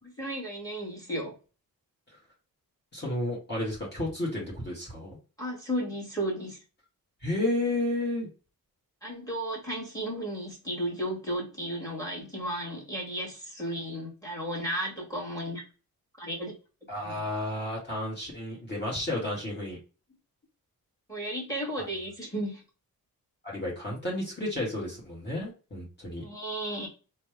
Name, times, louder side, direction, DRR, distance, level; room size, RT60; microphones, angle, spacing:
voice 1, 0.2-1.4 5.4-6.6 9.0-15.6 16.2-16.5 17.0-17.2 21.1-22.6 26.2-26.9, equal, 10° left, -3 dB, 1.8 m, -34 dB
voice 2, 2.9-5.2 7.2-8.3 16.9-19.8 21.8-21.9 23.4-26.2, left 1 dB, 25° left, -5 dB, 1.6 m, -32 dB
3.2 x 2.3 x 3.1 m, 0.35 s
cardioid pair, 85°, 37 cm